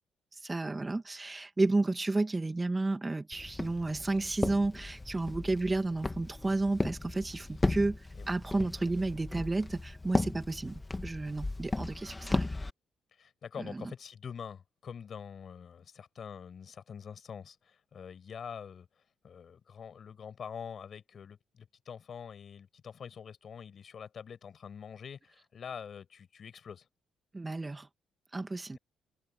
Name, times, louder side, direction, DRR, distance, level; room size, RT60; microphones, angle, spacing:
voice 1, 0.3-12.5 13.6-13.9 27.3-27.9 28.3-28.8, right 2 dB, 20° right, 1.9 m, -32 dB
Walk footsteps, 3.3-12.7, left 2 dB, 20° left, 1.8 m, -35 dB
voice 2, 13.1-18.9 19.2-26.9 28.7-28.8, left 7 dB, 50° left, 5.7 m, -45 dB
cardioid pair, 90°, 0 cm